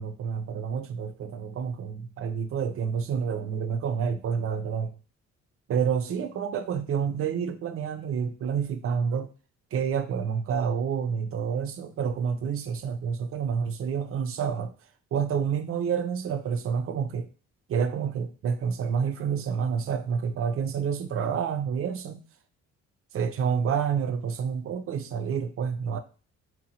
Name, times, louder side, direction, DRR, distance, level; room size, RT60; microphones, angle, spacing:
voice 1, 0.0-4.9 5.7-9.3 9.7-14.7 15.1-17.3 17.7-22.2 23.1-26.0, right 7 dB, 50° right, 0.4 m, -28 dB
2.8 x 2.1 x 2.7 m
cardioid pair, 90°, 30 cm